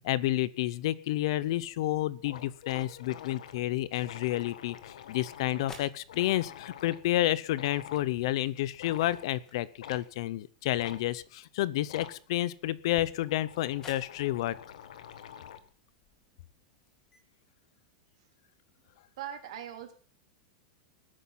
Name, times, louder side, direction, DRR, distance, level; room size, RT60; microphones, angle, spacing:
voice 1, 0.0-4.8 5.1-14.6, left 15 dB, 45° left, 19 dB, 0.7 m, -30 dB
sound 1, 1.6-1.7 2.0-2.1 2.2-7.1 7.5-8.1 8.7-9.3 9.8-10.1 10.8-11.0 11.8-12.2 13.0-15.7, left 9 dB, 85° left, 1.6 m, -47 dB
sound 2, 4.7-17.2, left 3 dB, 15° left, 2.6 m, -58 dB
voice 2, 19.2-19.9, right 10 dB, 55° right, 5 dB, 3.0 m, -40 dB
19.5 x 10.0 x 5.7 m, 0.43 s
supercardioid pair, 180°, 4 cm